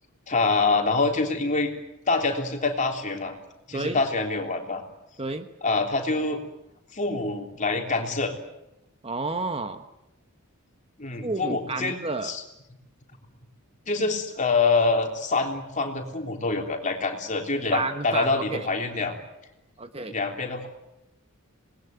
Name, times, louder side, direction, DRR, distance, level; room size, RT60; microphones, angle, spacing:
voice 1, 0.3-1.7 2.1-3.3 3.7-4.8 5.6-6.4 6.9-8.4 11.0-12.0 12.2-12.4 13.9-19.2 20.1-20.7, left 3 dB, 35° left, 3 dB, 3.4 m, -25 dB
voice 2, 9.0-9.8 11.2-12.3 17.7-18.7 19.8-20.2, right 3 dB, 25° right, 9 dB, 1.1 m, -30 dB
27.0 x 20.0 x 9.4 m, 0.90 s
head